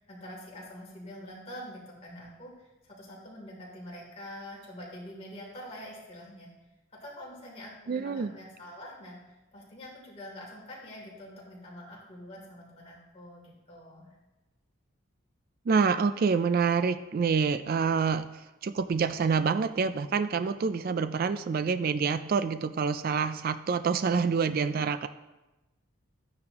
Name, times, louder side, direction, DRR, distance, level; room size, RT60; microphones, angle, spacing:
voice 1, 0.0-6.5 6.9-14.1, equal, 30° left, -4 dB, 3.1 m, -45 dB
voice 2, 7.9-8.3 15.7-18.2 18.6-25.1, right 5 dB, 45° right, 11 dB, 0.3 m, -27 dB
13.5 x 9.5 x 3.0 m, 1.1 s
head